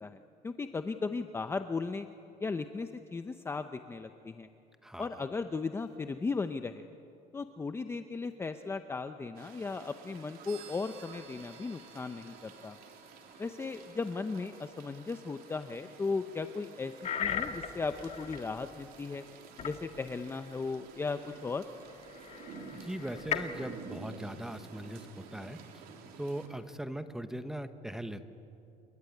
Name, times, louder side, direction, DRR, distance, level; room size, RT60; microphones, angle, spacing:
voice 1, 0.0-2.1 2.4-4.5 5.0-6.9 7.3-12.8 13.4-16.9 17.2-19.2 19.6-21.6, left 4 dB, 15° left, 8 dB, 0.7 m, -36 dB
sound 1, 9.3-26.5, right 5 dB, 70° right, 3.6 m, -51 dB
sound 2, 10.5-23.0, right 4 dB, 90° right, 4.6 m, -61 dB
sound 3, 17.0-18.5 19.6-19.8 21.4-21.5 22.1-23.7, left 8 dB, 45° left, 1.7 m, -37 dB
voice 2, 22.7-25.6 26.2-28.3, right 1 dB, 5° right, 9 dB, 1.2 m, -40 dB
29.0 x 21.5 x 9.4 m, 2.7 s
cardioid pair, 150°, 16 cm